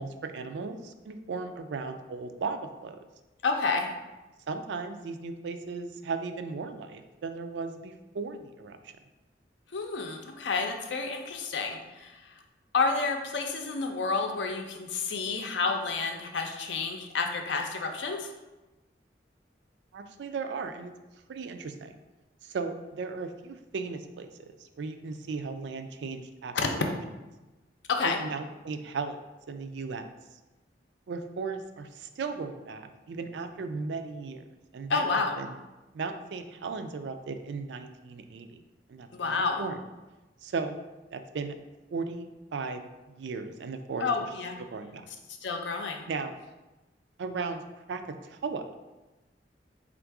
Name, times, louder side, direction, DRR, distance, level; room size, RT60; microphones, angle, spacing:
voice 1, 0.0-3.0 4.5-8.9 19.9-20.9 21.3-21.9 22.4-26.9 28.0-29.2 29.5-30.1 31.1-34.4 34.7-35.5 35.9-38.6 38.9-39.8 40.4-40.8 41.1-41.6 41.9-44.1 44.6-45.1 46.1-46.3 47.2-47.6 47.9-48.7, right 4 dB, 75° right, 8 dB, 0.4 m, -36 dB
voice 2, 3.4-3.9 9.7-12.3 12.7-18.3 26.5-26.7 27.9-28.2 34.9-35.3 39.1-39.6 44.0-44.6 45.4-46.0, left 4 dB, 80° left, 4 dB, 0.5 m, -30 dB
3.5 x 2.5 x 4.6 m, 1.1 s
head